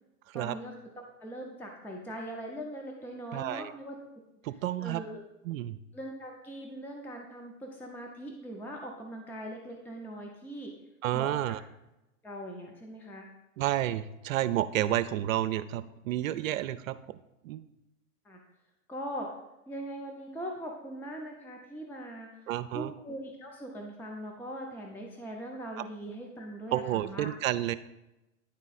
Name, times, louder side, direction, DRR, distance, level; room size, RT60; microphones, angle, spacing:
voice 1, 0.3-4.0 4.4-5.2 5.9-10.7 11.1-11.5 12.2-13.3 18.2-18.4 18.9-19.3 19.7-27.3, right 1 dB, 5° left, 1 dB, 0.6 m, -41 dB
voice 2, 3.3-3.7 4.4-5.0 5.5-5.8 11.0-11.6 13.6-17.0 17.4-17.6 22.5-22.9 26.7-27.8, right 13 dB, 75° right, 12 dB, 0.5 m, -30 dB
9.7 x 3.7 x 4.1 m, 0.95 s
hypercardioid pair, 120°, 41 cm